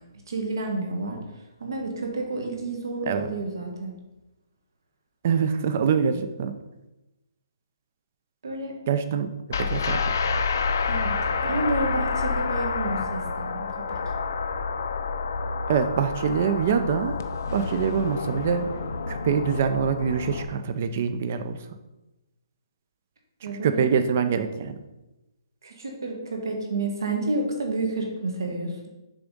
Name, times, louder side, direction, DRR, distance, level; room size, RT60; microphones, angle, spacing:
voice 1, 0.3-1.2 1.6-3.9 8.4-8.8 10.9-13.8 23.4-23.8 25.6-28.9, right 2 dB, 55° right, 2 dB, 1.6 m, -30 dB
voice 2, 5.2-6.5 8.9-9.3 9.6-10.1 15.7-17.2 17.5-18.7 19.1-21.6 23.4-24.8, right 7 dB, 25° right, 9 dB, 0.3 m, -25 dB
sound 1, 9.5-20.4, left 4 dB, 40° left, 0.5 m, -28 dB
6.9 x 3.5 x 5.2 m, 1.0 s
hypercardioid pair, 180°, 2 cm